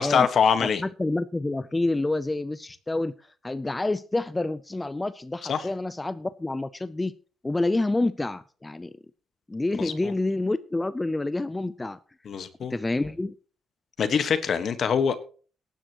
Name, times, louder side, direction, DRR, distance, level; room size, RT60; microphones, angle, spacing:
voice 1, 0.0-0.8 5.5-5.7 9.8-9.9 12.2-12.7 14.0-15.2, left 7 dB, 55° left, 11 dB, 1.5 m, -23 dB
voice 2, 0.8-7.1 7.4-8.9 9.5-12.0 12.7-13.3, left 2 dB, 15° left, 14 dB, 0.5 m, -28 dB
18.5 x 10.0 x 3.0 m, 0.39 s
cardioid pair, 90°, 0 cm